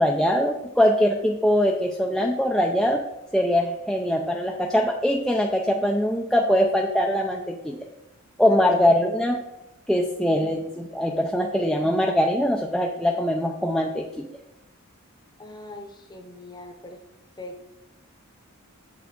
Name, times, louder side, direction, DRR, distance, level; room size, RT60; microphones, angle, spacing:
voice 1, 0.0-3.0 3.3-7.8 8.4-9.4 9.9-14.3, equal, ahead, 0 dB, 0.4 m, -22 dB
voice 2, 8.4-8.7 15.4-17.0 17.4-17.7, left 2 dB, 20° left, 4 dB, 0.9 m, -40 dB
7.2 x 5.9 x 3.7 m, 0.93 s
head